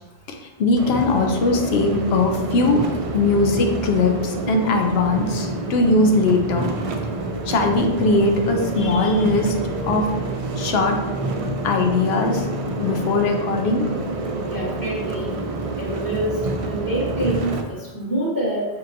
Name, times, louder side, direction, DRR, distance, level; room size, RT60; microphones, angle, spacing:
voice 1, 0.6-2.8 3.1-6.7 7.5-9.5 9.8-10.1 10.6-11.0 11.6-12.5 12.8-13.8, left 3 dB, 80° left, 3 dB, 0.8 m, -20 dB
sound 1, 0.8-17.6, right 2 dB, 55° right, 0.4 m, -27 dB
voice 2, 14.3-15.4 15.8-18.7, right 1 dB, 20° left, -11 dB, 1.0 m, -26 dB
4.9 x 2.8 x 2.6 m, 1.1 s
omnidirectional pair, 1.0 m